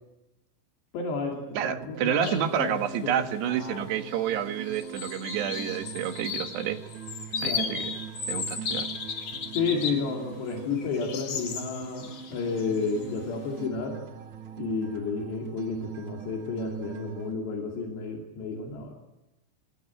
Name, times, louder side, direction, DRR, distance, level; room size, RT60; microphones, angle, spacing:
voice 1, 0.9-3.8 7.4-7.8 9.5-14.0 14.6-18.9, left 4 dB, 75° left, 0 dB, 4.9 m, -32 dB
sound 1, 1.3-17.3, right 9 dB, 60° right, 2.3 m, -42 dB
voice 2, 1.5-6.8 7.4-8.0 8.3-8.9, right 9 dB, 75° right, 7 dB, 3.7 m, -29 dB
sound 2, 2.2-2.5 2.9-3.0 3.9-4.4 4.6-10.1 10.5-13.2, left 6 dB, 45° left, 2.6 m, -35 dB
26.0 x 19.0 x 9.0 m, 0.98 s
omnidirectional pair, 5.0 m